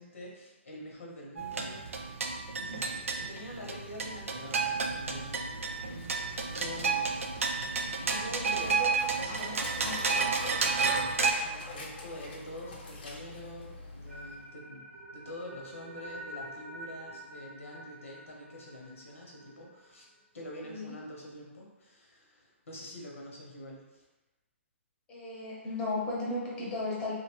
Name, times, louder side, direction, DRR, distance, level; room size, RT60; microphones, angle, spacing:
voice 1, 0.0-2.3 2.6-6.3 6.6-7.1 8.0-20.1 20.3-24.0, left 1 dB, 80° left, -2 dB, 0.9 m, -46 dB
sound 1, 1.4-11.3, right 4 dB, 90° right, 0.4 m, -31 dB
Dog, 4.6-14.5, left 2 dB, 45° left, 0.5 m, -44 dB
voice 2, 8.5-8.9 9.8-9.9 20.6-21.0 25.1-27.1, left 2 dB, 15° left, -6 dB, 0.8 m, -35 dB
sound 2, 14.1-20.2, right 1 dB, 70° right, 0.8 m, -47 dB
2.8 x 2.2 x 2.9 m, 1.1 s
hypercardioid pair, 145°, 7 cm